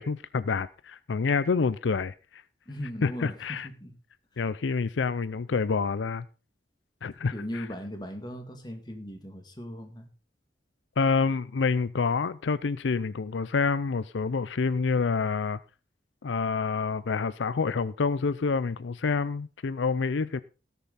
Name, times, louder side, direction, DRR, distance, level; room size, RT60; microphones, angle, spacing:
voice 1, 0.0-2.4 3.0-3.7 4.4-6.2 7.0-7.6 11.0-15.6 16.2-20.4, left 4 dB, 85° left, 0.5 m, -27 dB
voice 2, 2.7-4.0 7.3-10.1, equal, 25° left, 2.0 m, -38 dB
17.5 x 7.0 x 4.1 m
head